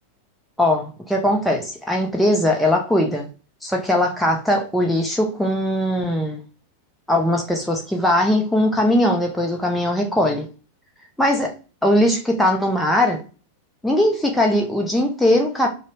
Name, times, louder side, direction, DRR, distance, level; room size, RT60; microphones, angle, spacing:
voice 1, 0.6-3.3 3.6-6.4 7.1-10.5 11.2-11.5 11.8-13.2 13.8-15.7, left 1 dB, ahead, 0.5 m, -20 dB
2.6 x 2.0 x 2.8 m
figure-of-eight pair, 90°, 0 cm